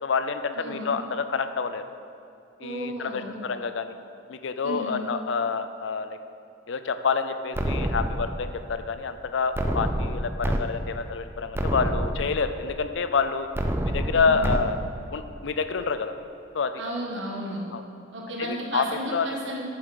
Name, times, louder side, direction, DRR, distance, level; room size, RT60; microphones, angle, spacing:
voice 1, 0.0-1.8 2.6-3.9 4.3-6.2 6.7-13.5 13.8-14.8 15.1-16.1 16.5-16.7 17.7-17.8 18.4-18.8 19.1-19.3, left 5 dB, 65° left, 10 dB, 0.5 m, -28 dB
voice 2, 0.6-1.0 2.6-3.4 4.6-5.0 14.1-14.5 16.8-17.6 18.1-19.6, equal, 65° right, -2 dB, 1.7 m, -33 dB
sound 1, 7.5-8.6 9.5-10.6 11.0-11.1 11.5-12.6 13.5-14.6, right 1 dB, 10° right, 0.4 m, -27 dB
8.9 x 7.0 x 5.2 m, 2.7 s
head